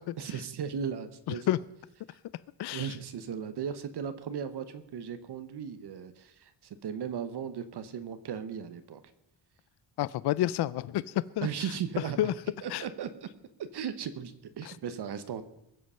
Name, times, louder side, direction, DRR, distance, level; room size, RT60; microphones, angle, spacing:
voice 1, 0.2-1.5 2.1-2.2 2.7-9.0 11.4-12.3 12.6-13.3 13.7-15.4, right 7 dB, 55° right, 11 dB, 1.0 m, -37 dB
voice 2, 2.6-2.9 10.0-11.5 12.2-12.3 12.7-12.8 14.6-14.7, left 13 dB, 55° left, 18 dB, 0.5 m, -29 dB
22.5 x 7.7 x 5.5 m, 0.85 s
cardioid pair, 150°, 48 cm